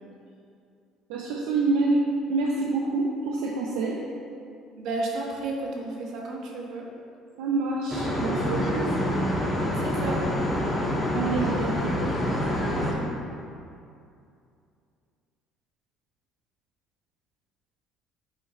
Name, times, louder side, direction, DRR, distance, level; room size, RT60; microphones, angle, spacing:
voice 1, 1.1-4.0 7.4-9.0 11.1-12.0, right 3 dB, 90° right, -2 dB, 0.6 m, -27 dB
voice 2, 4.8-6.9 9.8-10.3 12.5-13.1, right 2 dB, 65° right, -1 dB, 1.2 m, -33 dB
sound 1, 7.9-12.9, left 1 dB, 15° left, 1.4 m, -26 dB
8.4 x 4.8 x 3.1 m, 2.5 s
cardioid pair, 100°, 0 cm